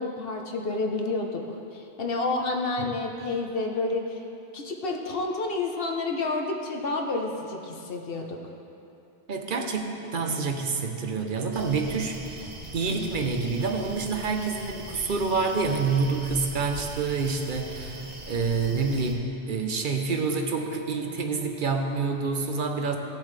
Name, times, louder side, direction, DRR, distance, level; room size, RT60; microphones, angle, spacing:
voice 1, 0.0-1.4 1.7-4.2 4.5-8.4, left 3 dB, 60° left, 2 dB, 1.1 m, -29 dB
voice 2, 9.3-23.0, right 4 dB, 50° right, 4 dB, 0.9 m, -28 dB
sound 1, 11.5-19.1, right 1 dB, 30° right, 1.0 m, -41 dB
16.5 x 7.3 x 3.3 m, 2.8 s
omnidirectional pair, 1.1 m